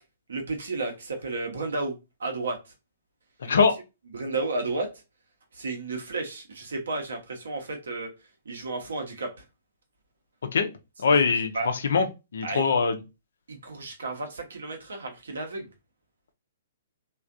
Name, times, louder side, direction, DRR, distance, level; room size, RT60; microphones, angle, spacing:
voice 1, 0.3-2.6 3.4-3.5 4.1-4.9 5.5-8.1 8.4-9.3 11.0-11.7 12.4-12.6 13.5-15.7, right 3 dB, 70° right, 0.9 m, -32 dB
voice 2, 11.0-12.1 12.3-13.0, left 5 dB, 65° left, 0.6 m, -22 dB
3.2 x 2.4 x 2.4 m
figure-of-eight pair, 120°, 0 cm